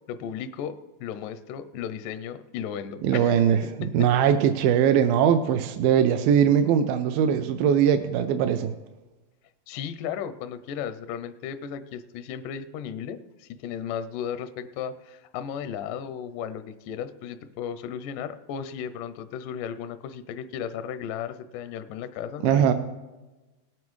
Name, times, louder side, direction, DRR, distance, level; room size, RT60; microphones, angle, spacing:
voice 1, 0.1-4.1 9.7-22.7, left 8 dB, 80° left, 12 dB, 1.9 m, -35 dB
voice 2, 3.0-3.6 3.9-8.7 22.4-22.7, right 8 dB, 85° right, 8 dB, 2.3 m, -21 dB
18.0 x 9.3 x 3.1 m, 1.1 s
omnidirectional pair, 4.2 m